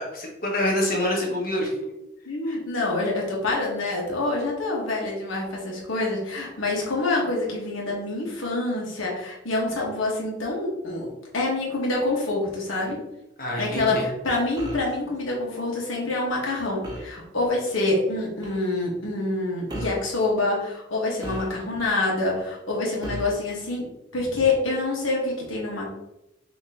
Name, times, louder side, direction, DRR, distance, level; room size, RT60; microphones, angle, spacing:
voice 1, 0.0-1.7 13.4-14.0, left 1 dB, 45° left, -1 dB, 1.3 m, -26 dB
voice 2, 2.2-13.0 13.6-23.9 24.1-25.9, left 2 dB, 90° left, -2 dB, 1.4 m, -26 dB
sound 1, 14.6-15.0 16.8-17.2 18.4-18.7 19.7-20.1 21.2-21.9 23.0-23.4, right 1 dB, 20° right, 0.8 m, -35 dB
5.8 x 3.0 x 2.9 m, 0.90 s
head